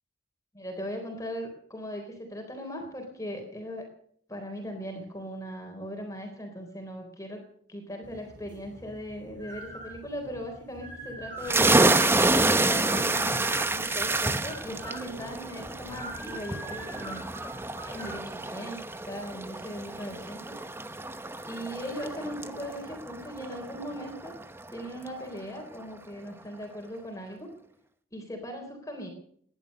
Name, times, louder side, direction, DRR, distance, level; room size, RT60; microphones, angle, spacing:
voice 1, 0.5-3.9 4.3-7.4 7.7-12.1 12.6-13.4 13.7-17.3 17.8-20.5 21.4-24.3 24.7-27.5 28.1-29.1, equal, 20° left, 3 dB, 3.8 m, -39 dB
sound 1, 8.0-18.2, right 1 dB, 45° right, 5.7 m, -43 dB
sound 2, 11.4-24.8, right 2 dB, 15° right, 0.9 m, -28 dB
20.0 x 11.0 x 6.5 m, 0.63 s
head